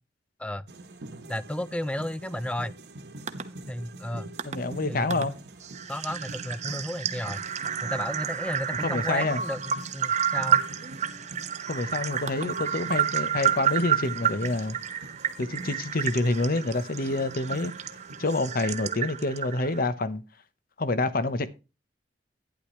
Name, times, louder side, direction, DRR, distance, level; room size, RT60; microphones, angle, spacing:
sound 1, 0.7-18.4, right 2 dB, 70° right, 1.2 m, -45 dB
voice 1, 1.3-2.8 3.7-4.3 4.9-5.4 5.9-7.4 7.8-10.6, left 1 dB, 5° left, 0.4 m, -33 dB
sound 2, 3.3-3.4 4.4-4.6 5.1-5.2 5.6-19.8, right 8 dB, 40° right, 0.9 m, -30 dB
voice 2, 4.4-5.3 8.8-9.4 11.7-14.8 15.4-17.7 18.2-20.2 20.8-21.6, left 2 dB, 55° left, 0.9 m, -27 dB
11.5 x 10.0 x 3.1 m
head